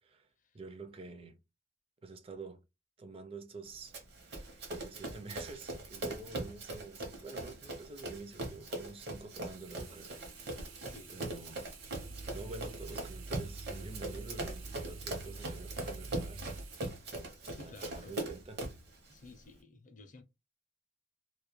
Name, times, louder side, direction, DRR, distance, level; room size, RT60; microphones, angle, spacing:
voice 1, 0.5-1.4 2.0-2.6 3.0-4.0 4.2-10.1 10.4-10.8 11.1-11.7 12.3-16.4 16.7-17.0 17.6-18.6, right 3 dB, 30° right, 0.4 m, -48 dB
Run, 3.9-18.9, right 2 dB, 55° right, 0.8 m, -41 dB
Sink (filling or washing), 9.5-17.7 18.2-18.3, right 6 dB, 85° right, 0.7 m, -55 dB
voice 2, 10.8-11.2 17.2-18.2 19.1-20.2, left 3 dB, 40° left, 0.5 m, -54 dB
Growling, 11.8-16.7, right 2 dB, 85° left, 0.5 m, -46 dB
2.3 x 2.1 x 2.9 m
head